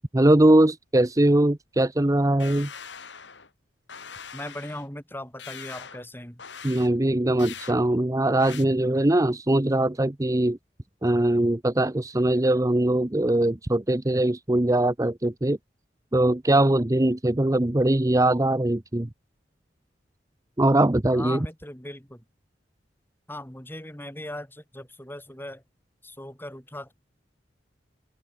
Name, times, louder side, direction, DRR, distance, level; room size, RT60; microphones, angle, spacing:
voice 1, 0.1-2.7 6.6-10.6 11.0-15.6 16.1-19.1 20.6-21.4, right 1 dB, 20° right, 0.7 m, -21 dB
sound 1, 2.4-3.5 3.9-4.9 5.4-6.0 6.4-6.9 7.4-7.8 8.4-8.6, left 7 dB, 75° left, 3.4 m, -42 dB
voice 2, 4.3-6.4 21.1-22.2 23.3-25.6 26.0-26.9, left 1 dB, 10° left, 6.8 m, -38 dB
open air
head